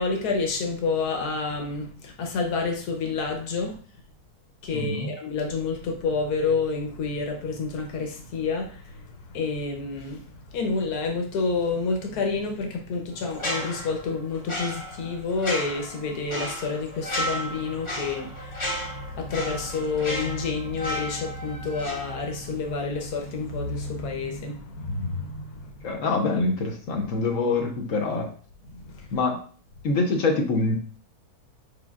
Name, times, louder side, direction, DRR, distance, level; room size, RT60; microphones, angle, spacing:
voice 1, 0.0-3.8 4.6-9.0 9.3-10.2 10.5-25.7 28.7-29.1, left 4 dB, 80° left, 2 dB, 1.4 m, -29 dB
voice 2, 4.7-5.1 25.8-28.3 29.1-29.4 29.8-30.8, left 3 dB, 60° left, 3 dB, 1.0 m, -25 dB
sound 1, 13.3-22.7 23.0-23.2, equal, 30° left, 0.6 m, -34 dB
5.3 x 3.3 x 2.3 m, 0.42 s
omnidirectional pair, 1.6 m